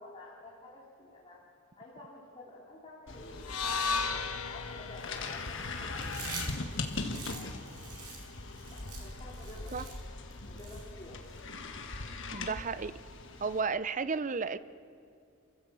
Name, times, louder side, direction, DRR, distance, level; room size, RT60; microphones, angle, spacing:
voice 1, 0.0-1.4 1.8-6.0 7.3-7.9 8.6-10.0 10.5-11.2, left 2 dB, 25° left, -6 dB, 3.2 m, -51 dB
sound 1, 3.1-13.6, left 3 dB, 55° left, 1.5 m, -40 dB
sound 2, 3.4-7.6, left 4 dB, 75° left, 1.3 m, -37 dB
Chewing mastication, 5.9-11.4, right 5 dB, 85° right, 5.1 m, -46 dB
voice 2, 12.3-12.9 13.4-14.6, right 5 dB, 35° right, 14 dB, 0.6 m, -33 dB
27.5 x 15.5 x 7.6 m, 2.6 s
head